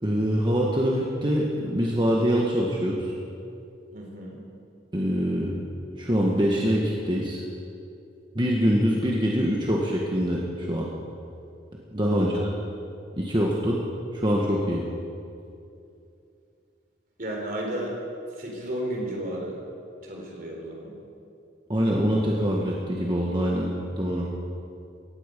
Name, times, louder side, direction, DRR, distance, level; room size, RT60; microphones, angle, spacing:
voice 1, 0.0-3.1 4.9-5.6 6.0-7.4 8.3-10.9 11.9-12.5 13.2-13.8 14.1-14.8 21.7-24.3, equal, 25° right, -2 dB, 1.5 m, -24 dB
voice 2, 3.9-4.4 12.0-12.3 17.2-17.9 18.4-19.6 20.0-20.9, right 1 dB, 45° right, 0 dB, 3.7 m, -33 dB
17.5 x 15.5 x 5.2 m, 2.6 s
head